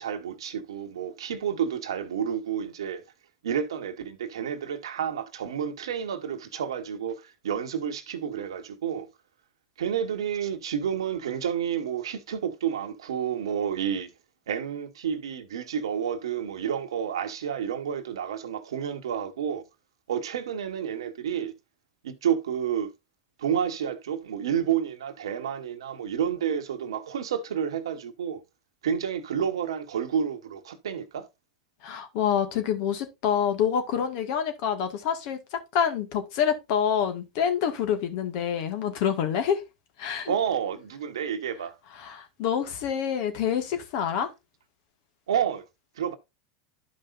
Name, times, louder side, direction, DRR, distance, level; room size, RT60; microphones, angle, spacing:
voice 1, 0.0-3.0 3.4-9.1 9.8-14.1 14.5-19.6 20.1-21.5 22.0-22.9 23.4-28.4 28.8-31.3 40.3-41.8 45.3-45.6 46.0-46.2, right 8 dB, 80° right, 1.1 m, -30 dB
voice 2, 31.8-35.4 35.7-39.6 40.0-40.3 42.0-44.3, left 8 dB, 60° left, 1.9 m, -27 dB
12.0 x 5.3 x 2.5 m
hypercardioid pair, 90°, 3 cm